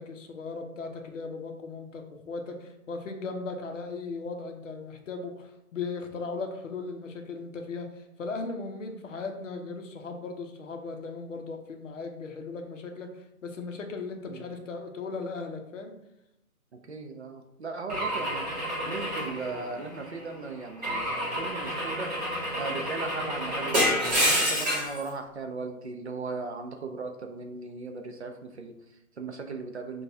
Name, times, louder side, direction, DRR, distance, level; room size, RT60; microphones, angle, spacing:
voice 1, 0.0-15.9, left 4 dB, 60° left, 4 dB, 0.7 m, -37 dB
voice 2, 16.7-30.0, right 4 dB, 50° right, 4 dB, 0.4 m, -38 dB
Car / Engine / Glass, 17.9-20.1 20.8-25.0, equal, 30° right, 1.0 m, -29 dB
6.3 x 2.3 x 2.6 m, 0.84 s
hypercardioid pair, 175°, 43 cm